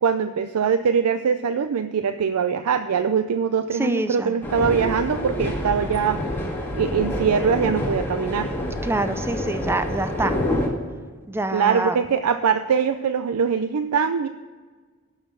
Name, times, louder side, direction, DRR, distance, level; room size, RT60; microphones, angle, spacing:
voice 1, 0.0-6.4 6.7-8.5 11.5-14.3, right 6 dB, 90° right, 10 dB, 0.4 m, -22 dB
voice 2, 3.7-4.4 8.8-10.4 11.3-12.0, right 1 dB, 10° right, 9 dB, 0.5 m, -26 dB
sound 1, 4.4-10.7, left 1 dB, 10° left, 1.8 m, -27 dB
11.0 x 6.4 x 6.3 m, 1.4 s
head